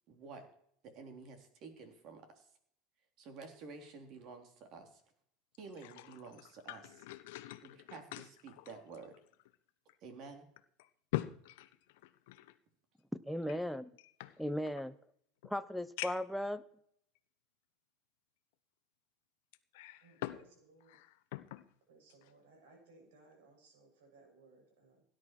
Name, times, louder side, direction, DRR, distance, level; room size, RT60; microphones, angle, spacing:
voice 1, 0.1-0.5 0.8-2.4 3.2-5.0 5.6-7.1 7.6-9.2 10.0-10.5, right 4 dB, 45° right, 5 dB, 3.4 m, -51 dB
sound 1, 5.5-9.6 9.9-10.0 10.6-12.6 13.4-14.9 15.4-15.5 16.0-16.4 17.2-17.3 19.5-20.5 20.8-21.7 22.1-22.3, left 16 dB, 75° left, 1.0 m, -44 dB
voice 2, 13.3-13.9 14.4-14.9 15.4-16.6, equal, ahead, 9 dB, 0.6 m, -37 dB
voice 3, 20.0-21.0 21.9-25.0, right 3 dB, 90° right, 2 dB, 6.8 m, -63 dB
17.0 x 11.0 x 4.6 m, 0.66 s
supercardioid pair, 140°, 0 cm